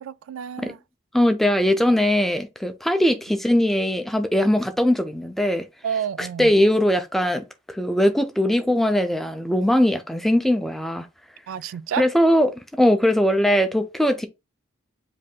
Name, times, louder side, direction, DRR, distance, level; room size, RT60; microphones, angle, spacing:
voice 1, 0.0-0.8 5.8-6.5 11.5-12.1, right 8 dB, 90° right, 0.3 m, -29 dB
voice 2, 1.1-5.6 6.2-11.1 12.0-12.5 12.8-14.3, left 1 dB, ahead, 0.4 m, -20 dB
7.3 x 2.7 x 2.3 m
head